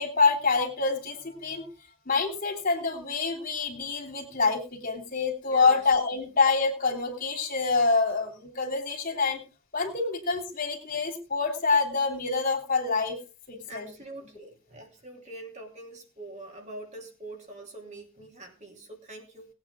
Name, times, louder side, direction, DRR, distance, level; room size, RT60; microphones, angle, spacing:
voice 1, 0.0-1.7 2.0-9.4 9.7-13.2 13.5-13.9, left 4 dB, 45° left, 3 dB, 3.5 m, -26 dB
voice 2, 5.5-5.9 13.7-19.5, right 2 dB, 35° right, 1 dB, 3.1 m, -44 dB
19.5 x 9.1 x 3.7 m, 0.32 s
head